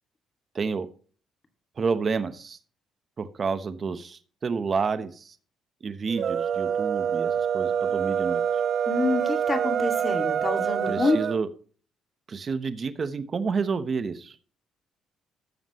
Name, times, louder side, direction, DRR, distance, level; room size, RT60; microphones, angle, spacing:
voice 1, 0.5-0.9 1.8-2.6 3.2-5.3 5.8-8.4 10.9-11.5 12.3-14.4, right 5 dB, 40° right, 11 dB, 1.0 m, -29 dB
sound 1, 6.1-11.4, right 8 dB, 60° right, 0.5 m, -26 dB
voice 2, 8.9-11.2, left 3 dB, 30° left, 5 dB, 2.3 m, -27 dB
13.0 x 7.2 x 3.1 m, 0.41 s
cardioid pair, 95°, 0 cm